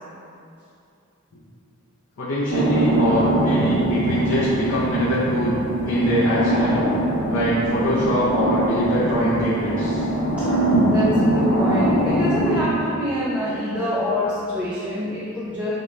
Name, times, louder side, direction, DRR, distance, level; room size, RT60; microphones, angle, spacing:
voice 1, 2.2-5.6 5.9-6.8 7.3-10.1, equal, 60° left, -9 dB, 0.5 m, -23 dB
sound 1, 2.5-12.6, right 1 dB, 75° left, 0.9 m, -22 dB
voice 2, 10.8-15.7, left 1 dB, 5° right, -9 dB, 0.3 m, -26 dB
3.8 x 2.2 x 3.1 m, 2.5 s
head